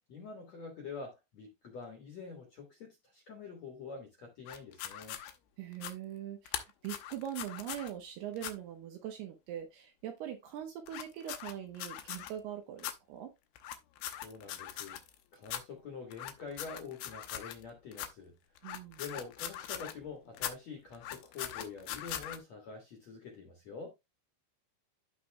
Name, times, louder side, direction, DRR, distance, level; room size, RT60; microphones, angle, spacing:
voice 1, 0.1-5.2 14.1-15.0 15.3-18.3 19.0-23.9, left 4 dB, 60° left, 1.8 m, -46 dB
sound 1, 4.5-5.3 5.7-5.9 6.5-7.9 8.4-8.5 10.9-12.3 12.8-12.9 13.6-15.2 15.4-15.6 16.1-17.6 17.9-18.1 18.6-20.0 20.3-20.5 20.9-22.4, left 11 dB, 75° left, 2.3 m, -41 dB
voice 2, 5.6-13.3 18.6-19.0, right 10 dB, 75° right, 2.6 m, -42 dB
14.5 x 5.0 x 2.3 m
omnidirectional pair, 5.5 m